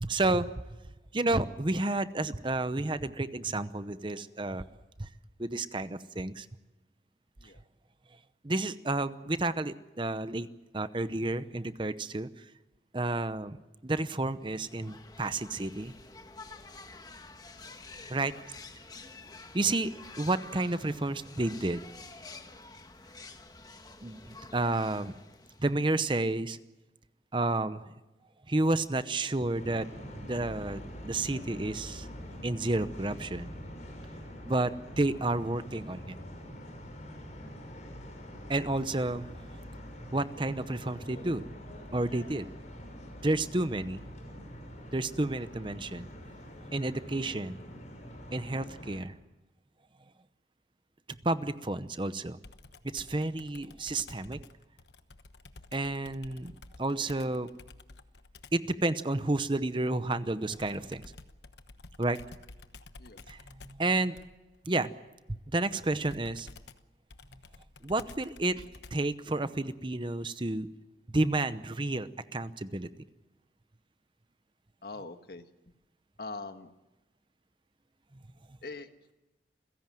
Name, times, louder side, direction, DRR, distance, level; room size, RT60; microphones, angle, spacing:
voice 1, 0.0-0.5 1.1-4.6 5.0-5.1 5.4-6.5 8.4-10.5 10.7-12.4 12.9-13.6 13.8-15.9 18.1-18.3 19.5-19.9 20.2-21.8 24.0-25.1 25.6-26.6 27.3-27.9 28.5-29.9 30.1-32.1 32.4-33.5 34.4-36.2 38.5-39.3 40.1-41.4 41.9-42.5 43.2-44.0 44.9-46.1 46.7-47.6 48.3-49.2 51.2-52.4 52.8-54.4 55.7-56.5 56.8-57.5 58.5-61.1 62.0-62.2 63.3-64.2 64.6-64.9 65.3-66.5 67.8-68.6 68.9-70.7 71.1-72.9, right 2 dB, 30° right, 12 dB, 0.8 m, -31 dB
sound 1, 14.4-26.0, left 3 dB, 20° left, 1.3 m, -49 dB
sound 2, 29.5-49.0, equal, 45° left, 6.1 m, -45 dB
Computer keyboard, 52.4-58.7 60.5-69.2, left 3 dB, 75° left, 1.1 m, -52 dB
voice 2, 74.8-75.4 76.2-76.7 78.6-78.9, left 3 dB, 60° left, 8 dB, 1.5 m, -42 dB
28.5 x 16.5 x 7.6 m, 1.0 s
head